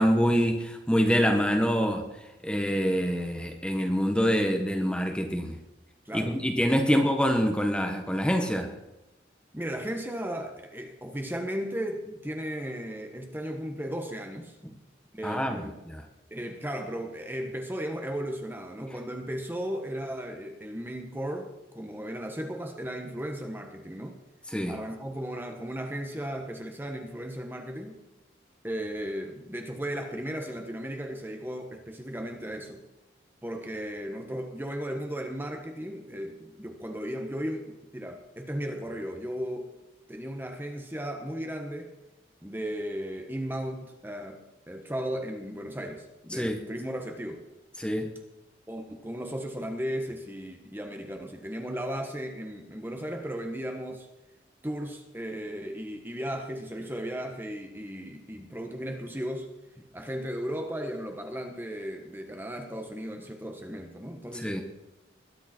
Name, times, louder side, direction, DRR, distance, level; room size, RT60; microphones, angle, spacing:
voice 1, 0.0-2.1 2.4-5.6 6.1-8.7 15.2-16.0 24.5-24.8 46.3-46.6 47.8-48.1 64.3-64.6, equal, 5° left, 4 dB, 1.5 m, -25 dB
voice 2, 6.0-6.4 6.9-7.0 9.5-14.5 15.1-15.7 16.3-24.2 24.7-28.0 28.6-32.8 33.4-39.7 40.1-41.9 42.4-47.4 48.7-54.1 54.6-59.5 59.9-64.6, equal, 10° right, 4 dB, 1.5 m, -35 dB
21.5 x 11.5 x 4.5 m, 0.97 s
head